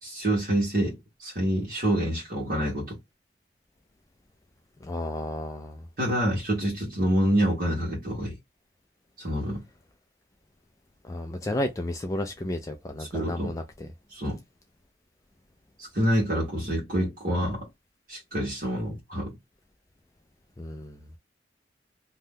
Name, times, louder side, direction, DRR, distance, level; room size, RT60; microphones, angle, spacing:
voice 1, 0.0-3.0 6.0-8.3 9.2-9.6 13.0-13.5 14.1-14.4 15.8-17.7 18.1-19.4, equal, 55° right, 1.2 m, -27 dB
voice 2, 4.8-5.9 11.0-13.9 20.6-21.0, left 1 dB, 20° left, 0.3 m, -32 dB
2.7 x 2.2 x 3.4 m
head